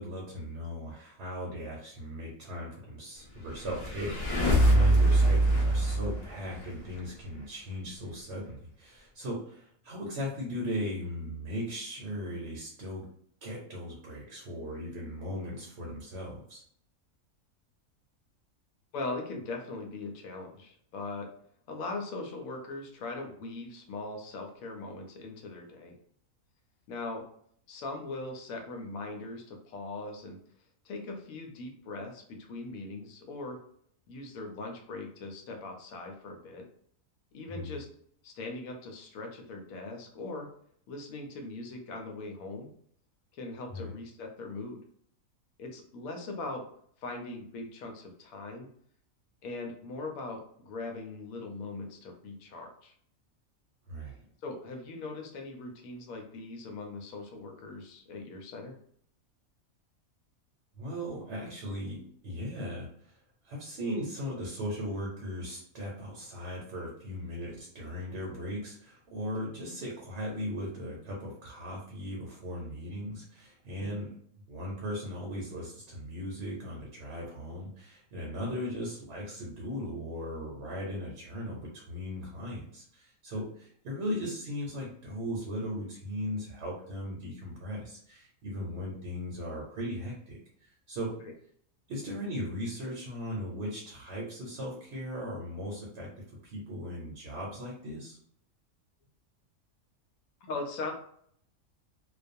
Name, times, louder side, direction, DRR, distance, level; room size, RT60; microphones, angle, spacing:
voice 1, 0.0-13.1 13.4-16.6 37.5-37.8 43.7-43.9 53.9-54.3 60.7-63.1 63.4-74.1 74.5-91.1 91.9-96.1 96.4-98.2, equal, 60° right, -3 dB, 0.9 m, -38 dB
sound 1, 3.4-7.0, right 1 dB, 55° left, 0.4 m, -24 dB
voice 2, 18.9-21.3 21.7-26.0 26.9-27.2 27.7-30.4 30.8-33.6 34.1-36.6 37.3-37.9 38.2-40.5 40.9-42.7 43.3-44.8 45.6-46.7 47.0-48.7 49.4-52.9 54.4-58.7 73.8-74.0 100.5-100.9, left 3 dB, 75° left, 2 dB, 1.0 m, -40 dB
2.4 x 2.3 x 2.6 m, 0.63 s
omnidirectional pair, 1.5 m